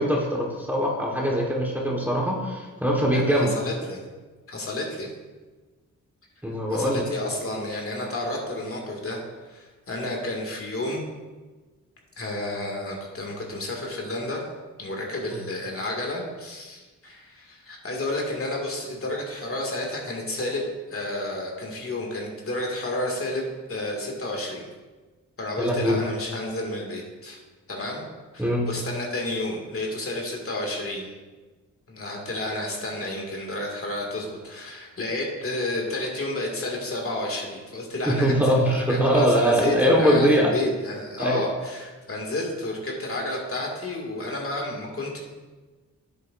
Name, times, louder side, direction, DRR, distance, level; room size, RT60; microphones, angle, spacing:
voice 1, 0.0-3.5 6.4-7.0 15.2-15.4 25.6-26.0 28.4-28.6 38.1-40.5 41.2-41.4, equal, 5° right, -2 dB, 1.4 m, -22 dB
voice 2, 3.1-4.0 4.5-5.1 6.7-9.2 9.5-11.0 12.2-14.4 14.8-24.6 25.4-27.4 27.7-28.1 28.3-31.1 31.9-45.2, left 1 dB, 45° left, 0 dB, 2.1 m, -31 dB
9.9 x 8.3 x 2.5 m, 1.3 s
cardioid pair, 80°, 32 cm